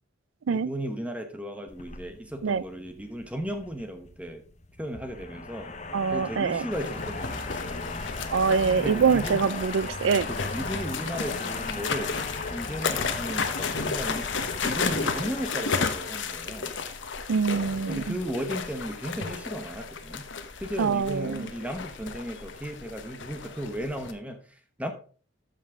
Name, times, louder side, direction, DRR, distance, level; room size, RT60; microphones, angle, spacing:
voice 1, 0.5-4.4 4.8-5.7 6.1-8.1 8.8-9.5 10.3-12.2 12.5-14.3 14.6-16.8 17.9-20.3 20.6-24.9, equal, 5° right, 0.9 m, -35 dB
sound 1, 1.7-18.2, left 3 dB, 35° left, 0.9 m, -39 dB
voice 2, 5.9-6.7 8.3-10.3 17.3-18.2 20.8-21.5, right 5 dB, 80° right, 0.4 m, -24 dB
sound 2, 6.7-24.1, left 5 dB, 70° left, 1.0 m, -33 dB
13.5 x 5.4 x 3.6 m
head